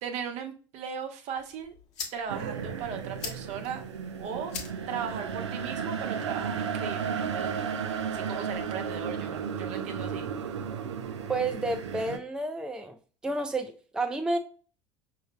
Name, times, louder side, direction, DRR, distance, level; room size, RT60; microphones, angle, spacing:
voice 1, 0.0-1.7 2.1-3.8 4.2-4.5 4.9-7.7 8.1-10.3, right 7 dB, 50° right, 5 dB, 0.8 m, -37 dB
sound 1, 1.3-7.3, left 6 dB, 50° left, 1.1 m, -45 dB
sound 2, 2.3-12.2, right 7 dB, 80° right, 0.5 m, -34 dB
voice 2, 11.3-13.0 13.2-14.4, right 2 dB, 5° right, 6 dB, 0.5 m, -30 dB
5.5 x 2.7 x 2.2 m, 0.36 s
figure-of-eight pair, 65°, 15 cm